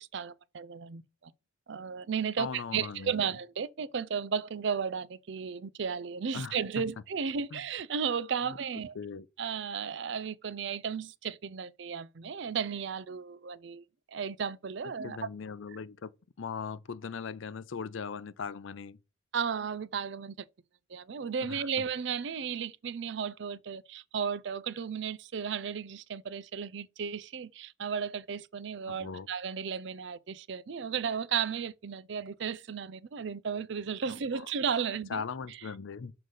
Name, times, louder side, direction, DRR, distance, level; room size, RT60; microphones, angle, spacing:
voice 1, 0.0-1.3 1.7-9.0 9.4-15.2 19.3-20.4 20.9-35.2, right 6 dB, 60° right, 0.4 m, -34 dB
voice 2, 2.4-3.1 6.3-6.6 7.5-7.6 8.5-8.6 9.0-9.3 15.0-16.1 16.4-19.0 21.4-21.7 28.9-29.3 34.1-34.5 35.1-36.1, left 6 dB, 70° left, 0.5 m, -39 dB
6.5 x 3.9 x 3.9 m
head